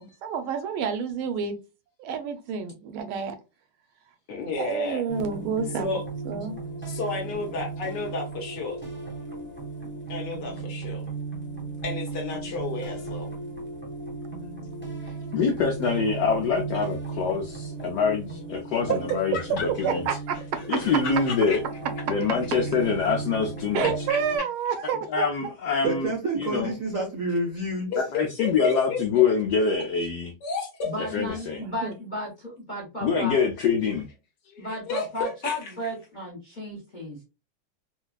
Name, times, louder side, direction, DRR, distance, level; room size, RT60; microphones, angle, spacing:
voice 1, 0.0-1.6 2.0-3.4 4.6-6.0 6.2-6.6 18.9-19.0 19.8-20.4 23.7-25.3 31.8-31.9, right 6 dB, 75° right, 1.4 m, -29 dB
voice 2, 4.3-5.0 5.8-6.0 6.8-8.8 10.1-11.0 11.8-13.3 19.3-19.7 20.6-21.6 24.1-24.2 27.9-29.0 30.4-31.0 34.4-35.7, left 3 dB, 60° left, 1.3 m, -32 dB
sound 1, 5.1-24.4, right 3 dB, 10° right, 0.9 m, -36 dB
voice 3, 15.0-20.1 20.7-21.6 22.1-23.9 25.1-26.7 28.0-30.3 31.0-31.6 33.0-34.1, left 5 dB, 90° left, 0.9 m, -25 dB
voice 4, 25.8-27.9, right 2 dB, 55° right, 0.9 m, -28 dB
voice 5, 30.8-33.4 34.6-37.2, left 1 dB, 35° left, 0.8 m, -34 dB
4.3 x 2.3 x 2.3 m
omnidirectional pair, 2.3 m